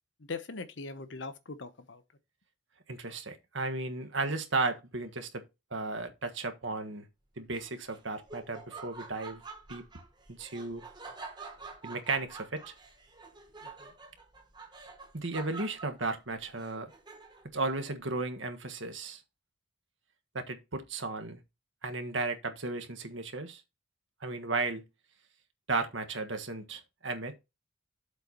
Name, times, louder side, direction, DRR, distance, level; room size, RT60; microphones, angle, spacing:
voice 1, 0.2-2.0 13.6-13.9, left 3 dB, 65° left, 1.0 m, -41 dB
voice 2, 2.9-5.4 5.7-7.1 7.4-9.4 9.7-9.8 10.4-10.8 11.8-12.7 15.1-16.9 17.5-19.2 20.3-21.4 21.8-23.6 24.2-24.8 25.7-27.3, right 3 dB, 65° right, 1.6 m, -34 dB
Laughter, 7.5-17.6, right 4 dB, 20° right, 1.5 m, -48 dB
7.9 x 4.1 x 5.9 m
head